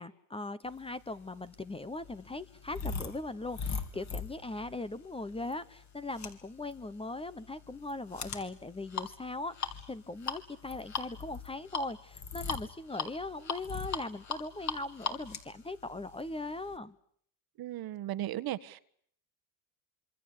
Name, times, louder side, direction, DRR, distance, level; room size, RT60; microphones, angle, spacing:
voice 1, 0.0-16.9, left 2 dB, 10° left, 14 dB, 1.1 m, -40 dB
sound 1, 1.1-16.8, left 5 dB, 35° left, 3.6 m, -40 dB
voice 2, 17.6-18.8, right 13 dB, 50° right, 14 dB, 1.5 m, -36 dB
27.0 x 24.5 x 8.5 m, 0.66 s
supercardioid pair, 110°, 46 cm